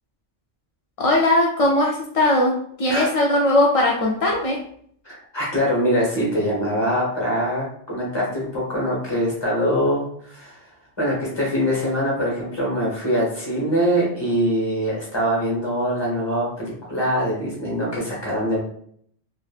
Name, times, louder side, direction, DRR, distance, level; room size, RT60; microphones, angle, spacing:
voice 1, 1.0-4.6, left 1 dB, 55° left, -2 dB, 0.4 m, -19 dB
voice 2, 5.0-10.7 11.0-18.6, equal, 25° left, -5 dB, 1.1 m, -23 dB
3.2 x 2.4 x 2.4 m, 0.62 s
omnidirectional pair, 1.2 m